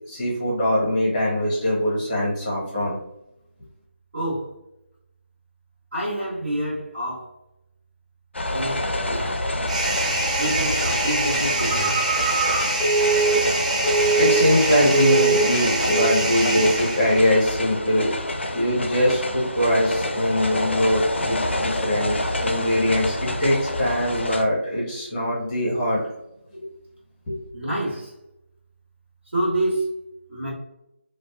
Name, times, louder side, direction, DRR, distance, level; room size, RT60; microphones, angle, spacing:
voice 1, 0.1-3.0 13.8-18.1 18.5-26.0 26.5-26.7 27.3-27.4, equal, 15° left, 0.7 m, -22 dB
voice 2, 4.1-4.6 5.9-7.3 8.5-9.4 10.4-12.1 27.5-28.1 29.3-29.9 30.3-30.5, right 1 dB, 60° right, 1.2 m, -27 dB
sound 1, 8.3-24.4, left 1 dB, 65° left, 0.4 m, -28 dB
sound 2, 9.7-17.4, right 2 dB, 35° right, 0.3 m, -26 dB
Telephone, 11.6-14.6 14.9-15.5 15.9-16.2, right 4 dB, 15° right, 1.2 m, -22 dB
2.5 x 2.2 x 2.3 m
figure-of-eight pair, 160°, 7 cm